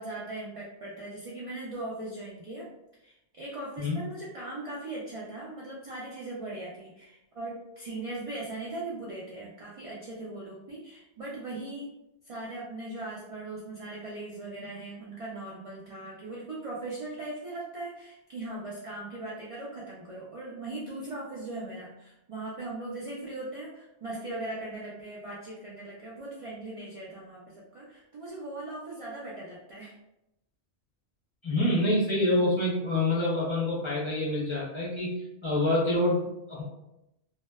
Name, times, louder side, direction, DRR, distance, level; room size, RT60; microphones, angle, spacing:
voice 1, 0.0-2.7 3.0-11.9 12.2-29.9, right 2 dB, 60° right, -5 dB, 0.3 m, -39 dB
voice 2, 31.4-36.6, left 1 dB, 40° left, -7 dB, 0.4 m, -27 dB
2.6 x 2.1 x 2.2 m, 0.89 s
omnidirectional pair, 1.1 m